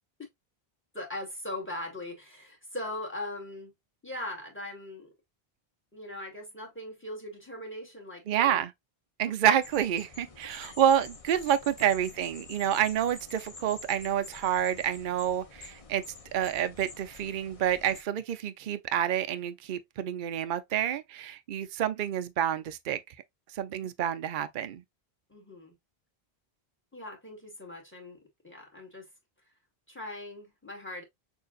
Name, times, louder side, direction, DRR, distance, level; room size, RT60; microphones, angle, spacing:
voice 1, 0.9-3.7 4.0-5.1 5.9-8.6 9.3-9.4 10.6-10.7 20.2-20.3 23.8-23.9 25.3-25.8 26.9-28.2 28.4-29.1 29.9-31.0, left 1 dB, 10° left, 1.9 m, -40 dB
voice 2, 8.3-8.7 9.2-16.0 16.3-23.0 23.5-24.8, right 10 dB, 60° right, 0.7 m, -28 dB
sound 1, 9.6-18.0, left 3 dB, 35° left, 0.9 m, -48 dB
6.5 x 2.7 x 2.4 m
omnidirectional pair, 1.0 m